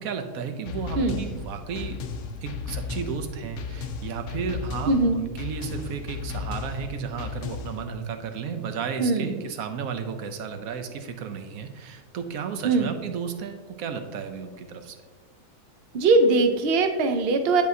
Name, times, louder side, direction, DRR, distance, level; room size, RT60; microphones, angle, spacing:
voice 1, 0.0-2.0 2.4-15.0, right 6 dB, 70° right, 7 dB, 1.1 m, -33 dB
sound 1, 0.7-7.9, left 5 dB, 65° left, 0.8 m, -35 dB
voice 2, 4.9-5.2 9.0-9.3 12.6-12.9 15.9-17.6, right 3 dB, 55° right, 6 dB, 0.7 m, -21 dB
10.0 x 4.7 x 2.7 m, 1.3 s
omnidirectional pair, 1.7 m